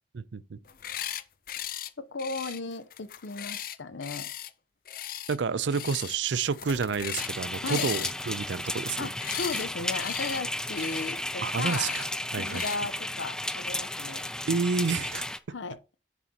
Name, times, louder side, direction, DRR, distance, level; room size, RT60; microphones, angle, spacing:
voice 1, 0.1-0.6 5.3-9.1 11.4-12.0 12.3-12.6 14.5-15.3, right 5 dB, 75° right, 0.5 m, -29 dB
sound 1, 0.7-1.2 1.5-1.9 2.2-4.5 4.9-5.4 5.7-6.2 6.4-7.4 7.7-9.7 9.9-10.4 10.7-11.1 11.6-12.1 12.5-12.8, left 11 dB, 50° left, 0.6 m, -37 dB
voice 2, 2.0-4.3 7.6-7.9 9.0-12.0 12.3-14.2 15.5-15.8, left 3 dB, 85° left, 0.8 m, -36 dB
sound 2, 7.2-15.4, left 1 dB, 5° left, 0.4 m, -34 dB
10.5 x 7.2 x 2.9 m
head